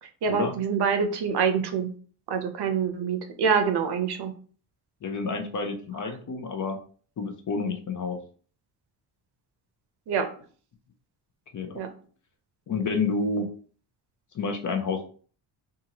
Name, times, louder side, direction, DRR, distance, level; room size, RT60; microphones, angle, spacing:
voice 1, 0.0-1.9 2.3-4.3 10.1-10.3 11.7-11.9, right 6 dB, 60° right, 7 dB, 0.6 m, -26 dB
voice 2, 5.0-6.8 7.2-8.2 11.5-11.8 12.7-13.5 14.3-15.0, left 4 dB, 40° left, 5 dB, 0.6 m, -29 dB
2.7 x 2.4 x 2.8 m, 0.43 s
cardioid pair, 75°, 46 cm